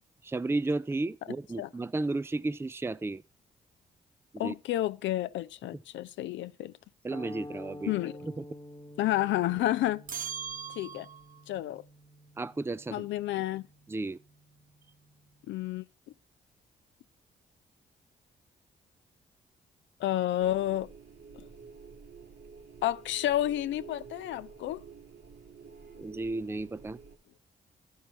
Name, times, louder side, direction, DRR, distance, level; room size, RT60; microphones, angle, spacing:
voice 1, 0.2-3.2 4.3-4.5 7.0-7.9 8.2-8.4 12.4-13.1 13.9-14.2 26.0-27.0, right 2 dB, 15° right, 0.5 m, -33 dB
voice 2, 4.4-6.7 7.9-8.1 9.0-10.0 10.8-11.1 11.5-11.8 12.9-13.7 15.5-15.8 20.0-20.9 22.8-24.8, left 13 dB, 80° left, 0.5 m, -30 dB
sound 1, 7.1-15.5, left 1 dB, 25° left, 1.1 m, -49 dB
sound 2, 10.1-11.4, right 7 dB, 45° right, 1.0 m, -39 dB
sound 3, 20.4-27.2, right 5 dB, 65° right, 1.9 m, -50 dB
12.5 x 5.6 x 6.2 m
supercardioid pair, 55°, 19 cm